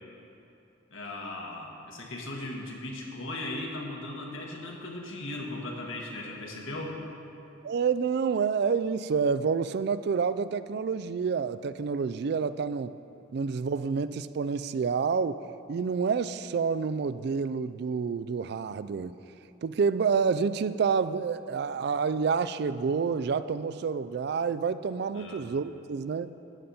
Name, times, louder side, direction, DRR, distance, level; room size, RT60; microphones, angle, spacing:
voice 1, 0.9-7.0 25.1-25.4, left 2 dB, 85° left, -1 dB, 1.7 m, -37 dB
voice 2, 7.6-13.0 13.3-15.4 15.7-19.2 19.6-26.3, right 5 dB, 55° right, 14 dB, 0.3 m, -28 dB
13.0 x 9.3 x 4.2 m, 2.8 s
head